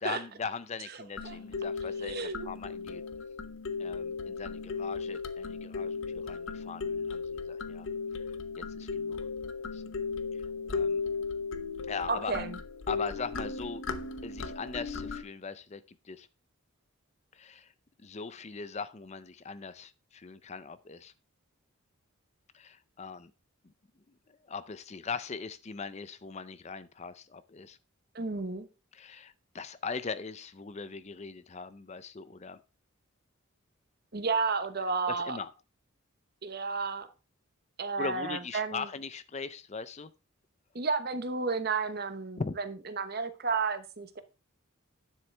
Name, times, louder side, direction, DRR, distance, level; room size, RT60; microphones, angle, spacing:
voice 1, 0.0-3.0 3.8-7.9 8.6-9.2 9.7-9.9 10.7-11.0 11.9-12.3 12.9-13.8 14.2-16.3 17.3-17.7 18.0-21.1 22.5-23.3 23.6-23.7 24.3-27.8 28.9-32.6 35.1-35.5 38.0-40.1 42.4-42.6, left 5 dB, 30° left, 15 dB, 0.5 m, -40 dB
sound 1, 1.2-15.2, left 4 dB, 65° left, 0.9 m, -36 dB
voice 2, 2.0-2.5 12.1-12.5 28.1-28.7 34.1-35.4 36.4-37.1 37.8-38.9 40.7-44.2, right 4 dB, 45° right, 11 dB, 1.0 m, -32 dB
9.8 x 7.6 x 3.3 m, 0.31 s
head